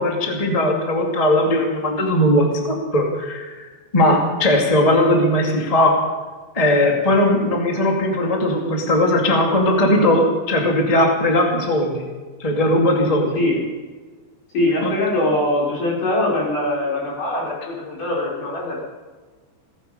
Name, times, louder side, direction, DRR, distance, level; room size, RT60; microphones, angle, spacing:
voice 1, 0.0-3.7 3.9-5.9 6.5-12.0 12.4-13.3 14.8-14.9, left 1 dB, 25° left, 1 dB, 0.8 m, -18 dB
voice 2, 14.5-18.8, left 1 dB, 45° left, -3 dB, 5.7 m, -22 dB
17.0 x 15.5 x 5.4 m, 1.4 s
omnidirectional pair, 5.2 m